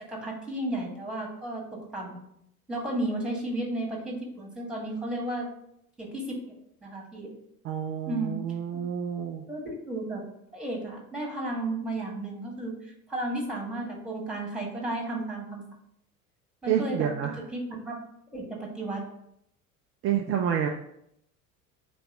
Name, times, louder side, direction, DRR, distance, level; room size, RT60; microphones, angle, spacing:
voice 1, 0.1-2.2 2.7-5.5 6.0-6.4 6.8-7.3 8.1-8.4 9.5-10.2 10.5-15.6 16.6-17.1 17.5-18.0 18.3-19.0, right 1 dB, ahead, 0 dB, 1.4 m, -33 dB
voice 2, 7.6-9.4 16.7-17.4 20.0-20.7, right 9 dB, 30° right, 1 dB, 0.4 m, -28 dB
3.4 x 3.0 x 4.8 m, 0.75 s
hypercardioid pair, 70°, 47 cm